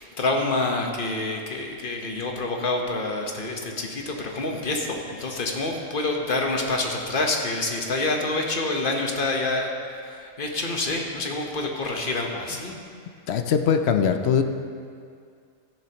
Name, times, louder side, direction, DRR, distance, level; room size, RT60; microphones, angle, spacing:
voice 1, 0.0-9.7 10.0-12.7, left 2 dB, 40° left, 1 dB, 1.2 m, -27 dB
voice 2, 13.3-14.4, left 7 dB, 60° left, 7 dB, 0.8 m, -21 dB
14.5 x 10.5 x 2.9 m, 2.2 s
omnidirectional pair, 1.5 m